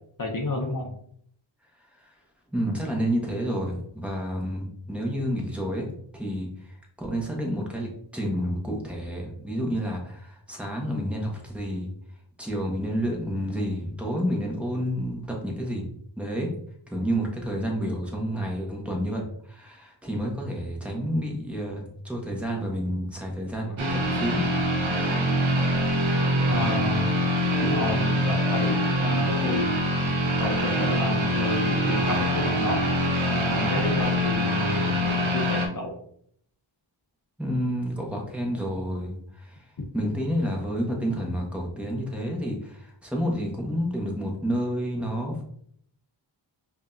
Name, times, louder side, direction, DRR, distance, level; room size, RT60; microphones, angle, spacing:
voice 1, 0.2-1.0 26.5-27.0 27.6-29.7 30.4-32.8 33.2-35.9, left 2 dB, 40° left, 1 dB, 0.7 m, -30 dB
voice 2, 2.5-5.8 6.1-6.5 7.0-11.9 12.4-15.9 16.2-16.5 16.9-19.2 19.5-24.4 37.4-39.2 39.9-45.4, equal, 5° right, -1 dB, 1.1 m, -29 dB
sound 1, 23.8-35.7, equal, 75° right, 0.8 m, -24 dB
5.0 x 2.7 x 2.5 m, 0.66 s
wide cardioid pair, 50°, 48 cm